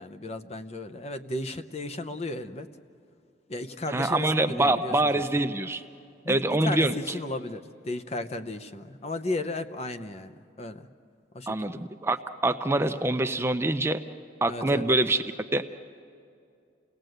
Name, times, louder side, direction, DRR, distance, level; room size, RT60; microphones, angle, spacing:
voice 1, 0.0-2.7 3.5-5.4 6.2-10.3 10.6-10.9 11.3-11.8 14.5-14.8, left 2 dB, 35° left, 8 dB, 0.8 m, -35 dB
voice 2, 3.9-5.8 6.3-6.9 11.5-12.2 12.4-14.0 14.4-15.2 15.5-15.6, right 2 dB, 15° right, 8 dB, 0.5 m, -25 dB
28.5 x 18.0 x 7.9 m, 2.5 s
head